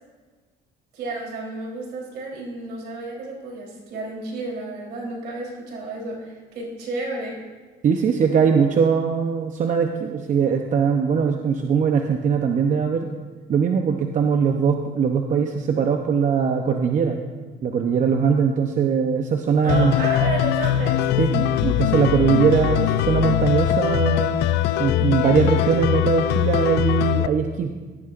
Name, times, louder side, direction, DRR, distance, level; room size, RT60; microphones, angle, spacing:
voice 1, 0.9-7.4 19.6-21.0, right 3 dB, 75° right, -2 dB, 3.7 m, -32 dB
voice 2, 7.8-13.1 13.5-17.2 17.6-19.9 21.2-24.4 24.8-27.7, right 6 dB, 50° right, 4 dB, 0.8 m, -21 dB
sound 1, 19.7-27.3, left 12 dB, 80° left, 0.5 m, -21 dB
17.0 x 12.5 x 2.6 m, 1.4 s
cardioid pair, 110°, 17 cm